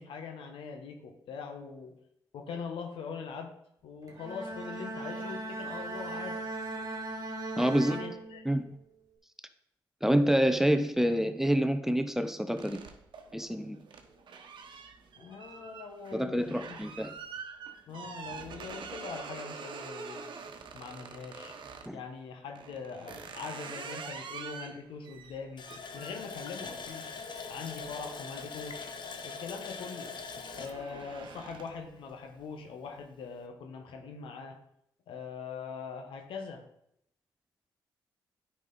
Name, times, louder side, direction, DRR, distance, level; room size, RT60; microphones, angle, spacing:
voice 1, 0.0-2.0 2.3-3.5 3.8-6.4 7.7-8.6 15.2-16.8 17.9-20.3 20.7-21.6 21.9-25.7 25.9-27.1 27.5-28.9 29.2-30.2 30.5-34.6 35.1-36.6, left 5 dB, 80° left, 5 dB, 1.2 m, -42 dB
Bowed string instrument, 4.1-8.8, right 2 dB, 45° right, 1.6 m, -38 dB
voice 2, 7.6-8.0 8.5-8.7 10.0-12.8 13.3-13.8 16.1-17.1 21.9-22.0, equal, 5° right, 9 dB, 0.7 m, -27 dB
sound 1, 12.6-22.0 22.6-29.0 29.4-29.8 30.1-31.9, right 5 dB, 65° right, 1.0 m, -46 dB
Water tap faucet, 25.6-32.1 32.4-32.5 32.9-33.1, left 5 dB, 60° left, 1.0 m, -42 dB
9.4 x 5.0 x 4.0 m, 0.75 s
supercardioid pair, 60°, 9 cm